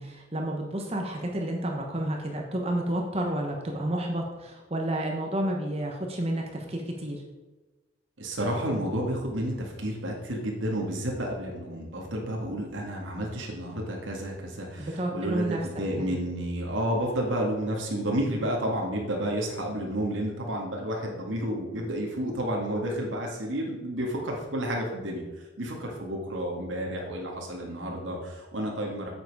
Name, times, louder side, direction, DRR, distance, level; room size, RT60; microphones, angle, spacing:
voice 1, 0.0-7.2 14.8-15.6 16.0-16.1, right 1 dB, 30° right, 1 dB, 1.1 m, -30 dB
voice 2, 8.2-29.1, right 1 dB, 85° right, -1 dB, 2.0 m, -31 dB
8.7 x 7.7 x 4.8 m, 1.2 s
head